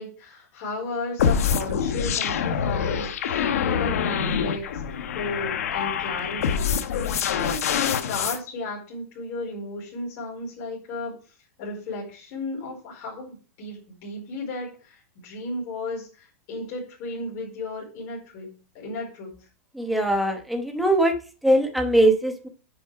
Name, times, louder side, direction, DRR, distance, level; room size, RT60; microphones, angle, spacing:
voice 1, 0.0-4.7 5.1-7.0 7.4-11.1 11.6-18.5 18.7-19.3, left 2 dB, 30° left, -4 dB, 4.5 m, -34 dB
sound 1, 1.2-8.4, left 7 dB, 65° left, 1.1 m, -25 dB
voice 2, 19.7-21.1 21.4-22.5, right 1 dB, ahead, 4 dB, 1.0 m, -21 dB
9.5 x 6.2 x 4.7 m, 0.36 s
supercardioid pair, 180°, 8 cm